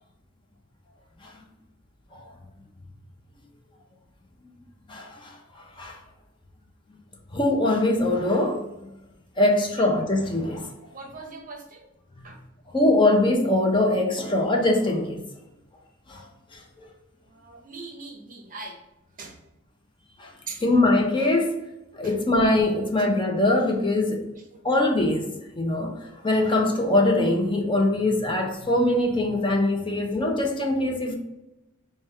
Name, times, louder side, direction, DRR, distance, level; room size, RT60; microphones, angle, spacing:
voice 1, 4.9-6.0 7.3-8.6 9.4-10.7 12.7-15.2 16.1-16.9 20.2-20.3 20.6-21.6 21.9-24.2 24.6-25.3 25.5-31.2, left 2 dB, 25° left, 0.5 m, -23 dB
voice 2, 10.9-11.9 12.2-12.4 17.3-18.8 19.2-19.4 20.5-20.6 22.0-22.2 24.5-24.6, right 3 dB, 40° right, 0.6 m, -40 dB
5.1 x 2.2 x 3.2 m
head